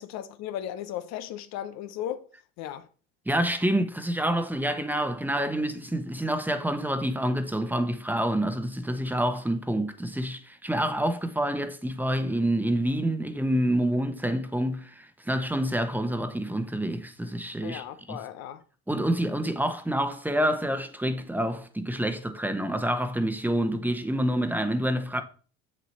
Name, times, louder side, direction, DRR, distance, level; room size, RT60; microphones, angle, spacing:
voice 1, 0.0-2.2 2.6-2.9 17.6-18.6, left 11 dB, 60° left, 0.8 m, -36 dB
voice 2, 3.3-18.2 18.9-25.2, right 1 dB, 5° right, 1.1 m, -27 dB
7.3 x 6.6 x 4.4 m
hypercardioid pair, 80°, 30 cm